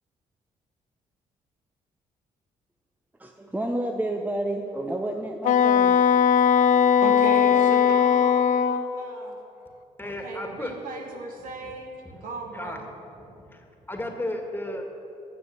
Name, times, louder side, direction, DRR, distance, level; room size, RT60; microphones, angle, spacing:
voice 1, 3.2-6.0 6.4-7.0 7.3-7.6, right 1 dB, 10° right, 3 dB, 0.9 m, -31 dB
Wind instrument woodwind instrument, 5.4-8.9, left 8 dB, 65° left, 0.6 m, -19 dB
voice 2, 7.0-9.4 10.0-12.9, right 2 dB, 75° right, 1 dB, 2.0 m, -36 dB
voice 3, 10.0-10.7 11.6-11.7 12.0-12.8 13.2-14.8, left 1 dB, 15° left, 3 dB, 2.0 m, -35 dB
13.0 x 6.9 x 7.6 m, 2.8 s
supercardioid pair, 65°, 14 cm